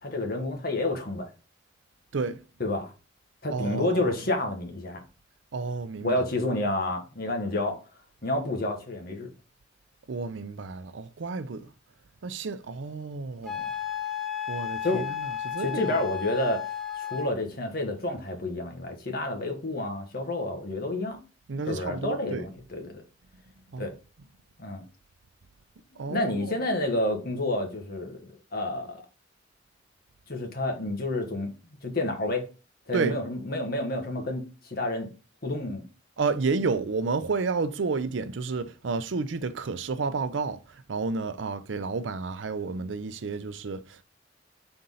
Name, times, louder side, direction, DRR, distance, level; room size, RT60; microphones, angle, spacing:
voice 1, 0.0-1.3 2.6-2.9 3.4-5.0 6.0-7.8 8.2-9.3 14.8-15.1 15.6-16.7 16.9-21.2 21.7-23.0 23.8-23.9 24.6-24.8 26.1-28.2 28.5-29.0 30.3-32.5 32.9-35.1 35.4-35.8, left 2 dB, 55° left, 1.5 m, -29 dB
voice 2, 3.5-4.1 5.5-6.1 10.1-11.7 12.2-13.7 14.5-16.0 21.5-22.5 23.7-23.9 26.0-26.6 32.9-33.2 36.2-44.0, right 4 dB, 80° right, 0.5 m, -31 dB
Wind instrument woodwind instrument, 13.4-17.3, left 9 dB, ahead, 0.9 m, -33 dB
4.4 x 3.9 x 5.5 m
head